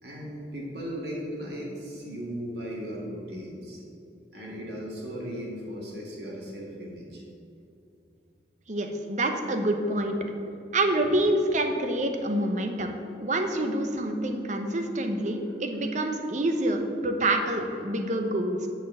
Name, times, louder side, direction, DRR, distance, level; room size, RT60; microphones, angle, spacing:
voice 1, 0.0-3.8 4.3-7.2 11.0-11.1, equal, 65° right, -3 dB, 2.0 m, -37 dB
voice 2, 8.7-10.2 10.7-12.9 13.2-18.7, right 1 dB, 40° right, 5 dB, 0.8 m, -27 dB
8.4 x 4.5 x 7.3 m, 2.7 s
head